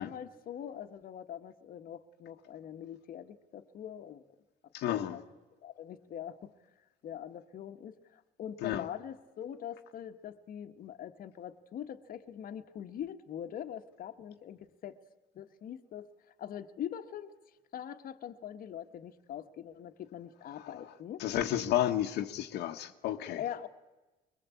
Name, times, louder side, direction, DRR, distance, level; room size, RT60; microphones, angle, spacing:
voice 1, 0.0-4.2 4.9-5.2 5.6-6.5 7.0-15.0 15.3-16.1 16.4-17.3 17.7-21.2 23.4-23.7, left 10 dB, 55° left, 1.4 m, -43 dB
voice 2, 4.7-5.2 8.6-8.8 21.2-23.4, left 12 dB, 80° left, 1.3 m, -31 dB
22.5 x 21.5 x 8.4 m
cardioid pair, 110°, 17 cm